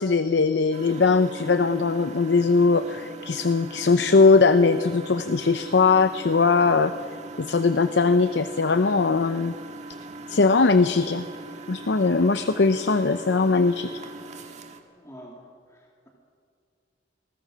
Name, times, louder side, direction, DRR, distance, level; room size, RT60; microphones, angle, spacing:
voice 1, 0.0-6.9 7.4-9.5 10.3-11.3 11.7-13.9, left 4 dB, 80° left, 11 dB, 0.7 m, -20 dB
Engine, 0.7-14.8, right 2 dB, 40° right, 1.9 m, -40 dB
voice 2, 15.0-16.1, equal, 15° left, -1 dB, 2.5 m, -47 dB
28.5 x 20.0 x 6.2 m, 2.3 s
head